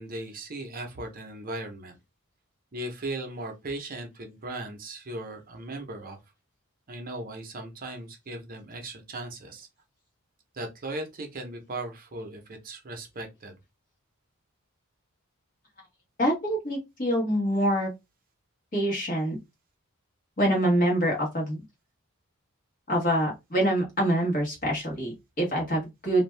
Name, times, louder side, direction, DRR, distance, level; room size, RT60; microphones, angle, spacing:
voice 1, 0.0-2.0 2.7-6.2 6.9-9.7 10.5-13.5, right 2 dB, 40° right, 0.7 m, -37 dB
voice 2, 16.2-17.9 18.7-19.4 20.4-21.6 22.9-26.2, right 1 dB, 40° left, 1.3 m, -25 dB
2.6 x 2.2 x 3.2 m
head